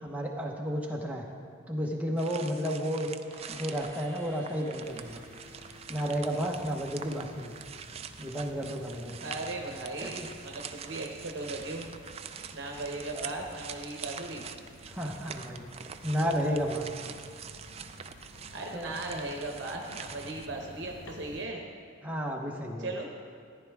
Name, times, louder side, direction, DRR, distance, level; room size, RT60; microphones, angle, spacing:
voice 1, 0.0-1.3 1.7-3.1 3.5-5.2 5.9-7.5 8.2-9.2 10.0-10.1 13.1-13.3 14.9-15.8 16.0-16.9 18.7-18.9 22.0-22.9, equal, 5° right, 0 dB, 0.9 m, -32 dB
sound 1, 2.2-20.5, right 7 dB, 30° right, 0.3 m, -45 dB
sound 2, 3.3-7.1, equal, 10° left, 2.3 m, -54 dB
sound 3, 4.8-21.5, left 1 dB, 75° left, 1.0 m, -52 dB
voice 2, 9.2-11.9 12.5-14.4 18.5-21.6 22.8-23.1, right 2 dB, 55° right, 1 dB, 0.9 m, -37 dB
14.5 x 10.5 x 3.5 m, 2.2 s
head